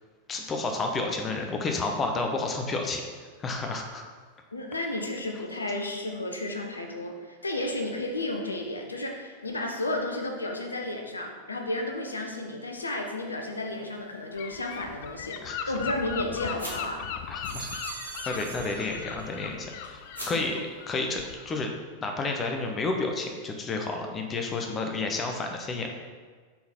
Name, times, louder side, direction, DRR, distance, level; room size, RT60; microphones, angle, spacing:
voice 1, 0.3-3.0 3.4-4.0 15.4-15.6 17.3-17.7 18.3-19.7 20.3-21.7 22.0-25.9, left 3 dB, 20° left, 3 dB, 0.8 m, -30 dB
voice 2, 4.5-17.0 20.3-20.6, left 2 dB, 80° left, 3 dB, 0.7 m, -32 dB
sound 1, 13.6-21.3, equal, 90° right, 1.6 m, -48 dB
Gull seagull / Wind, 14.4-21.6, left 8 dB, 50° left, 0.4 m, -39 dB
sound 2, 15.6-16.8 17.2-19.6 20.0-20.6, right 5 dB, 70° right, 0.5 m, -44 dB
5.5 x 4.0 x 4.3 m, 1.5 s
figure-of-eight pair, 90°, 0 cm